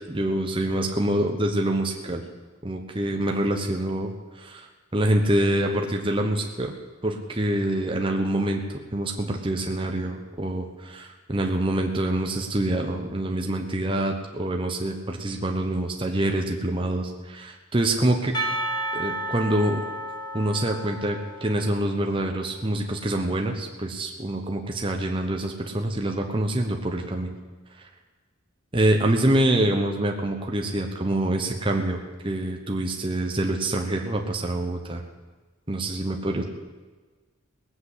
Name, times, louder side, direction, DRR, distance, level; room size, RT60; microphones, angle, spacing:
voice 1, 0.1-2.2 2.6-6.7 7.0-18.3 18.9-19.8 20.3-27.4 27.8-27.9 28.7-35.0 35.7-36.4, right 1 dB, 25° right, 2 dB, 1.1 m, -26 dB
Percussion, 18.3-22.2, right 1 dB, 20° left, 1.5 m, -32 dB
18.5 x 7.9 x 8.1 m, 1.3 s
head